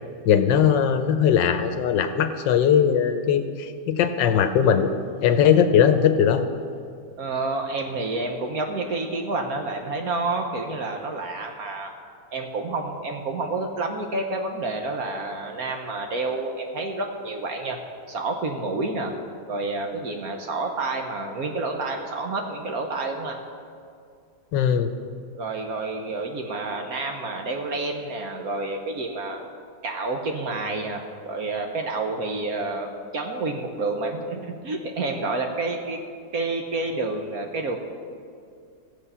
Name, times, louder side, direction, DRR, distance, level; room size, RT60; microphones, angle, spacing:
voice 1, 0.2-4.9 5.2-6.5 24.5-24.9, left 8 dB, 75° left, 9 dB, 1.3 m, -19 dB
voice 2, 7.2-11.9 12.3-17.8 18.1-19.1 19.5-23.4 25.4-29.4 29.8-36.0 36.3-37.8, right 3 dB, 55° right, 3 dB, 1.3 m, -29 dB
16.0 x 7.3 x 5.5 m, 2.3 s
omnidirectional pair, 2.1 m